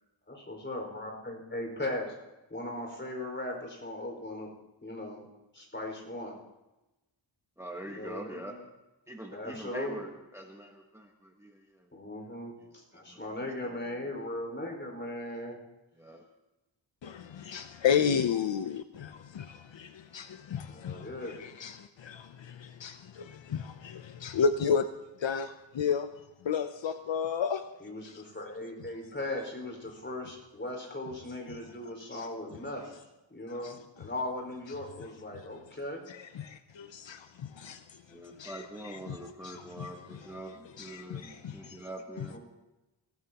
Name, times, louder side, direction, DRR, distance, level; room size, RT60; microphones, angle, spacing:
voice 1, 0.3-4.5 4.8-5.3 5.5-6.4 7.9-8.6 9.3-10.0 11.9-15.6 20.7-21.5 27.8-33.0 33.3-36.0 42.3-42.4, left 1 dB, 25° left, 5.2 m, -38 dB
voice 2, 7.6-8.6 9.1-11.9 12.6-13.3 13.6-14.1 16.0-16.2 38.1-42.4, right 1 dB, 5° right, 1.3 m, -44 dB
voice 3, 17.0-24.9 25.2-26.1 26.4-27.7 32.1-32.3 33.6-33.7 36.1-37.8 38.4-38.6 39.1-39.2 39.4-39.9 40.8-41.8, left 7 dB, 70° left, 0.7 m, -32 dB
25.0 x 16.0 x 3.0 m
wide cardioid pair, 120°, 46 cm